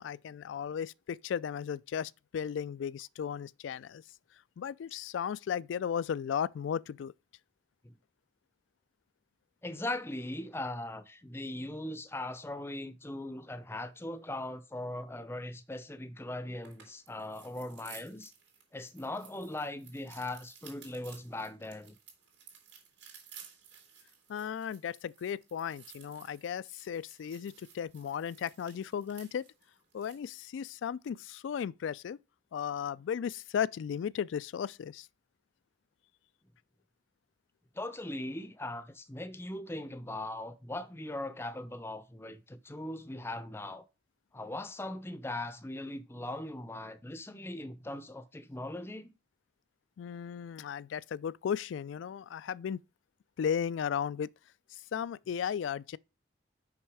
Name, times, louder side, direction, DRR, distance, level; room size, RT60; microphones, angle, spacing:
voice 1, 0.0-4.0 4.6-7.1 24.3-29.4 29.9-32.2 32.5-35.1 50.0-52.8 53.4-54.3 54.7-56.0, left 8 dB, 85° left, 0.3 m, -35 dB
voice 2, 9.6-18.3 18.7-22.0 37.7-43.8 44.3-49.1, left 1 dB, 15° left, 0.5 m, -39 dB
sound 1, 16.6-30.3, right 7 dB, 70° right, 2.8 m, -56 dB
5.9 x 5.4 x 4.8 m
head